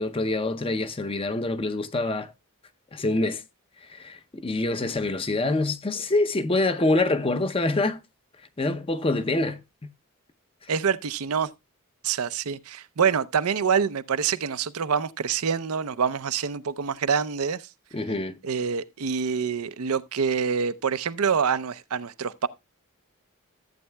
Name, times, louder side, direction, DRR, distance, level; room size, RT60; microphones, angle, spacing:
voice 1, 0.0-2.3 2.9-3.4 3.8-8.0 8.6-9.6 17.9-18.4, left 2 dB, 25° left, 0.6 m, -25 dB
voice 2, 10.7-11.5 12.0-17.6 18.4-22.5, right 6 dB, 85° right, 0.6 m, -26 dB
14.0 x 8.2 x 2.2 m
head